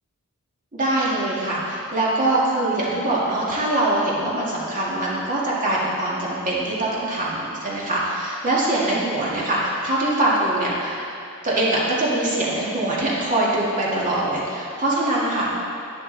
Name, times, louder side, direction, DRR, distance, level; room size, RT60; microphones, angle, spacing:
voice 1, 0.7-11.1 11.4-15.5, right 1 dB, 35° right, -6 dB, 1.9 m, -23 dB
10.5 x 10.5 x 3.9 m, 2.6 s
head